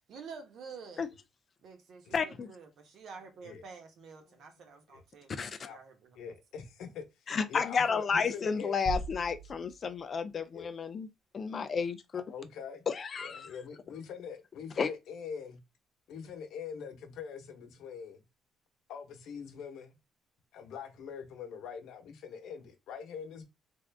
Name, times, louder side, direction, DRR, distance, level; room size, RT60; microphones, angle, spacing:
voice 1, 0.1-1.1 1.6-6.2, right 5 dB, 60° right, 1.1 m, -49 dB
voice 2, 2.1-2.5 5.4-5.6 7.3-11.1 11.3-12.2 12.9-13.5 14.8-14.9, left 5 dB, 35° left, 0.3 m, -32 dB
voice 3, 4.6-5.0 5.6-5.8 6.1-7.0 7.5-8.8 10.5-10.7 12.3-12.9 13.2-15.6 16.1-18.2 18.9-20.0 20.5-23.4, left 6 dB, 75° left, 1.0 m, -43 dB
sound 1, 8.9-10.7, right 2 dB, 20° right, 0.7 m, -40 dB
3.7 x 2.4 x 3.4 m
cardioid pair, 155°, 0 cm